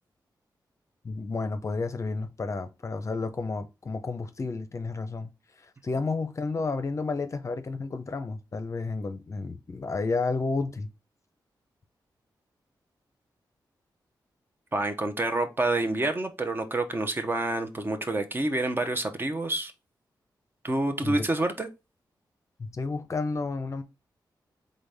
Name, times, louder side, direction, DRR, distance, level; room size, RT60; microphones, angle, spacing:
voice 1, 1.0-5.3 5.6-10.9 21.0-21.3 22.6-23.8, left 3 dB, 40° left, 0.6 m, -31 dB
voice 2, 14.7-19.7 20.6-21.7, right 2 dB, 25° right, 0.8 m, -28 dB
4.0 x 3.8 x 3.4 m
cardioid pair, 90°, 8 cm